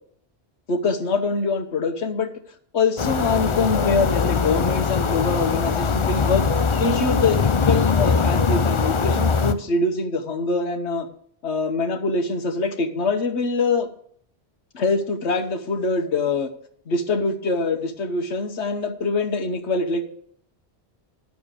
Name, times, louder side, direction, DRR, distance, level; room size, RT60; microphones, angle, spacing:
voice 1, 0.7-2.3 2.7-6.4 6.8-11.1 11.4-13.9 14.7-16.5 16.9-20.1, left 3 dB, 90° left, 6 dB, 1.4 m, -24 dB
sound 1, 3.0-9.5, left 5 dB, 35° left, 0.5 m, -21 dB
10.5 x 6.9 x 6.7 m, 0.62 s
omnidirectional pair, 1.1 m